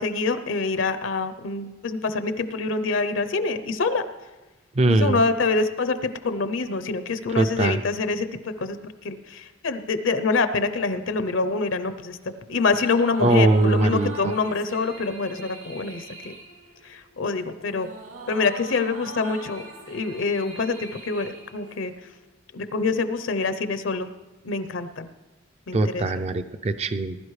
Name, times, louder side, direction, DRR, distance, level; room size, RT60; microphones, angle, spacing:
voice 1, 0.0-4.0 4.8-16.3 16.8-17.9 18.3-21.9 22.5-24.1 24.4-25.1 25.7-26.0, left 4 dB, 70° left, 10 dB, 0.7 m, -26 dB
voice 2, 4.7-5.2 7.3-7.8 13.2-14.3 25.7-27.2, right 2 dB, 30° right, 10 dB, 0.4 m, -21 dB
sound 1, 12.4-22.2, right 2 dB, 80° right, 2.5 m, -42 dB
20.0 x 11.5 x 3.2 m, 1.1 s
head